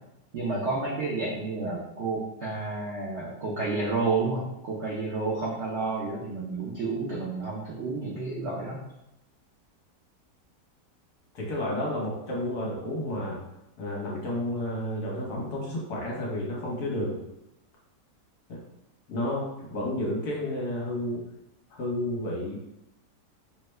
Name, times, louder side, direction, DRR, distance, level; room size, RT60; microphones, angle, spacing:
voice 1, 0.3-8.8, right 3 dB, 80° right, -5 dB, 0.6 m, -30 dB
voice 2, 11.3-13.4 13.8-17.2 18.5-18.6 19.1-21.2 21.7-22.6, left 1 dB, 65° left, -3 dB, 1.3 m, -31 dB
3.3 x 2.1 x 3.2 m, 0.89 s
omnidirectional pair, 1.9 m